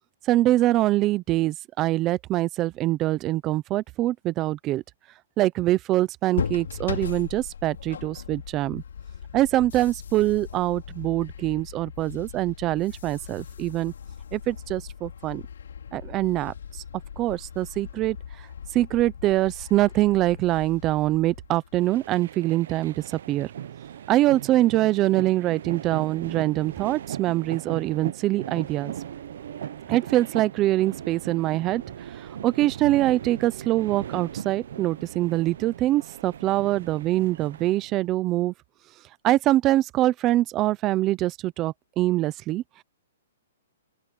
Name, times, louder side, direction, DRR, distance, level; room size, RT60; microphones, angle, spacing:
voice 1, 0.3-4.8 5.4-8.8 9.3-13.9 14.3-15.4 15.9-16.8 17.2-18.2 18.7-22.9 23.3-23.5 24.1-28.9 29.9-31.8 32.1-38.5 39.2-42.8, right 15 dB, 15° right, 0.5 m, -24 dB
sound 1, 6.3-22.1, left 7 dB, 80° left, 2.7 m, -38 dB
sound 2, 21.8-38.0, right 10 dB, 50° right, 0.7 m, -38 dB
open air
hypercardioid pair, 175°, 0 cm